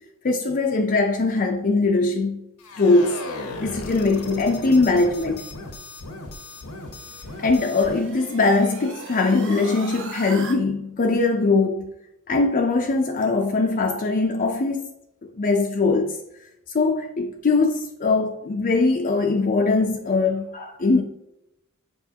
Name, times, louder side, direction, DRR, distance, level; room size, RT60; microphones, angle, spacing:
voice 1, 0.2-2.4 2.8-3.2 3.6-5.5 7.4-11.9 12.3-14.9 15.3-16.2 16.7-21.0, left 3 dB, 40° left, 0.5 m, -21 dB
sound 1, 2.6-8.1, left 2 dB, 80° left, 1.0 m, -37 dB
sound 2, 6.6-10.6, right 4 dB, 60° right, 1.0 m, -39 dB
7.0 x 4.9 x 2.8 m
head